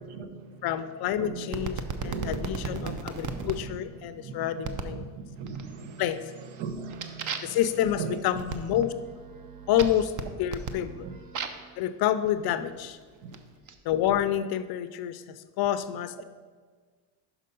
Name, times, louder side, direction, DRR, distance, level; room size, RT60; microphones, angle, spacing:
voice 1, 0.0-0.6 1.2-1.7 2.0-3.0 3.2-3.7 4.2-4.3 4.6-6.0 6.5-7.6 8.0-8.2 11.0-11.2 12.4-12.5 13.2-13.3, right 5 dB, 70° right, 9 dB, 0.9 m, -38 dB
voice 2, 0.6-5.0 6.0-6.2 7.4-8.9 9.7-10.1 10.4-11.1 11.8-13.0 13.9-15.2 15.6-16.2, left 11 dB, 50° left, 12 dB, 0.5 m, -28 dB
sound 1, 1.5-3.6 4.6-5.0 5.5-5.9 6.3-11.7 12.5-13.7, right 5 dB, 40° right, 0.6 m, -37 dB
5.9 x 5.5 x 5.2 m, 1.5 s
cardioid pair, 115°, 49 cm